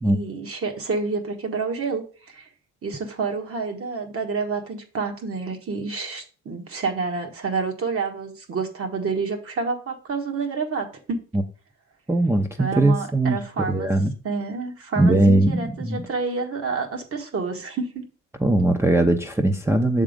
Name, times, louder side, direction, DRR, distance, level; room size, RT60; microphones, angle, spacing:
voice 1, 0.0-2.5 2.8-11.2 12.6-13.9 14.2-18.0, right 4 dB, 50° right, 3 dB, 1.6 m, -28 dB
voice 2, 12.1-13.4 13.7-14.1 15.0-16.0 18.4-20.0, right 2 dB, 10° right, 2 dB, 0.7 m, -20 dB
6.9 x 3.7 x 5.0 m, 0.38 s
cardioid pair, 90°, 30 cm